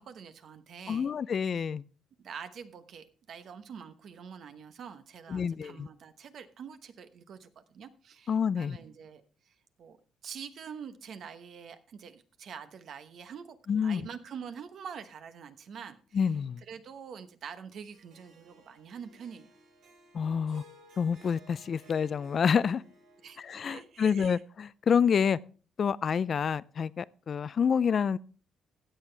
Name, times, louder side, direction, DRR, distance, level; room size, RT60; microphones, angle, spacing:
voice 1, 0.0-1.1 2.2-10.0 10.2-13.6 13.8-19.5 23.2-23.4 23.7-24.4, right 7 dB, 60° right, 1.1 m, -46 dB
voice 2, 0.9-1.8 5.3-5.9 8.3-8.8 13.7-14.1 16.1-16.6 20.1-20.6 21.0-22.8 23.4-25.4 25.8-28.2, left 7 dB, 45° left, 0.4 m, -28 dB
Harp, 17.9-24.3, right 2 dB, 85° right, 4.7 m, -58 dB
15.5 x 8.0 x 3.3 m
cardioid pair, 100°, 0 cm